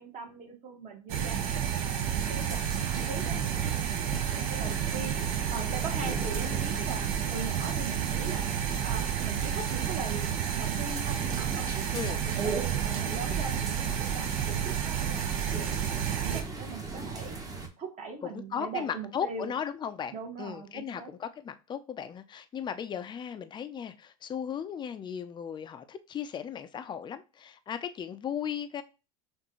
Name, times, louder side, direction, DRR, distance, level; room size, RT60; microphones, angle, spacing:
voice 1, 0.0-5.1 5.5-8.5 8.8-12.5 12.8-17.3 17.8-19.5 20.1-21.1, right 4 dB, 40° right, 1.7 m, -41 dB
sound 1, 1.1-16.4, right 9 dB, 60° right, 1.0 m, -30 dB
sound 2, 2.2-17.7, right 3 dB, 20° right, 1.1 m, -42 dB
voice 2, 18.2-20.1 20.4-28.8, left 8 dB, 25° left, 0.5 m, -36 dB
6.0 x 2.6 x 3.0 m
supercardioid pair, 105°, 19 cm